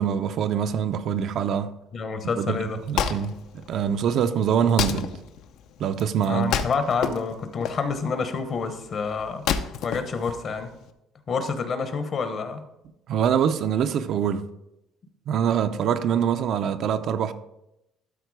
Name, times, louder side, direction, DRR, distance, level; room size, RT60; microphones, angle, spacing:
voice 1, 0.0-1.7 2.4-2.6 2.9-3.4 3.7-5.1 5.8-6.5 13.1-14.5 15.3-17.3, right 8 dB, 50° right, 0.5 m, -24 dB
voice 2, 1.9-2.8 6.3-9.4 9.8-10.7 11.3-12.6, left 5 dB, 35° left, 0.9 m, -28 dB
Wood, 2.5-10.9, left 8 dB, 65° left, 0.6 m, -31 dB
12.5 x 4.4 x 4.7 m
cardioid pair, 160°, 0 cm